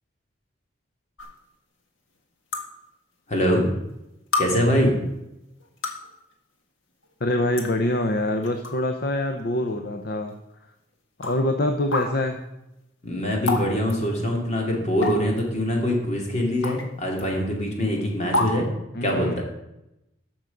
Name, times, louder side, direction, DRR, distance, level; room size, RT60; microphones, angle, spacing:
sound 1, 1.2-1.3 2.5-2.6 3.6-3.7 4.3-4.5 5.6-6.1 7.0-7.1 7.6-7.7 8.4-8.7 9.2-9.3 10.3-10.4 11.2-11.4 11.9-12.1 13.5-13.6 13.9-14.0 15.0-15.4 16.6-16.8 17.2-17.3 18.3-18.5, left 2 dB, 80° left, 1.6 m, -26 dB
voice 1, 3.3-3.6 4.4-4.9 13.0-18.7 19.0-19.4, equal, 35° left, 0 dB, 2.3 m, -23 dB
voice 2, 7.2-10.4 11.2-12.4 18.9-19.4, left 1 dB, 50° left, 6 dB, 0.7 m, -25 dB
12.5 x 6.3 x 5.2 m, 0.90 s
head